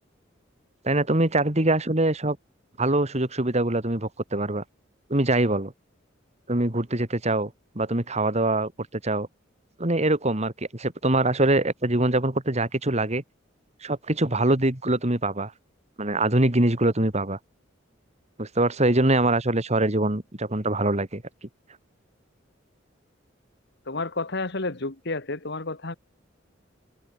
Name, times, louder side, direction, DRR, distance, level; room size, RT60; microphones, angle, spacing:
voice 1, 0.8-2.4 2.8-4.6 5.1-5.7 6.5-8.7 9.0-9.3 9.8-13.2 13.8-15.5 16.0-17.4 18.4-21.2, right 2 dB, 35° right, 2.5 m, -23 dB
voice 2, 23.9-25.9, left 3 dB, 60° left, 2.1 m, -30 dB
head